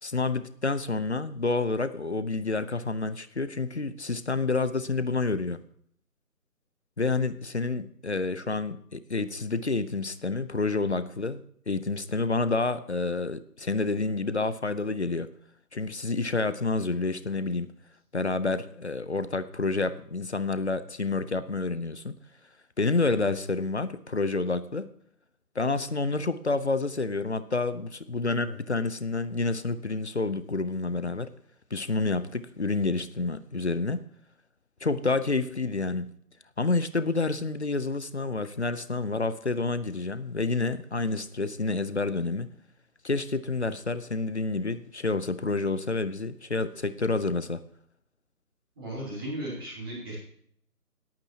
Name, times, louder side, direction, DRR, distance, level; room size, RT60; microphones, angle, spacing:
voice 1, 0.0-5.6 7.0-11.4 11.7-15.3 15.7-17.7 18.1-22.1 22.8-24.9 25.6-31.3 31.7-34.0 34.8-36.1 36.6-42.5 43.0-47.6, left 3 dB, 45° left, 14 dB, 0.7 m, -29 dB
voice 2, 48.8-50.2, right 1 dB, 15° right, -5 dB, 2.9 m, -36 dB
20.0 x 8.9 x 2.8 m, 0.63 s
figure-of-eight pair, 160°, 47 cm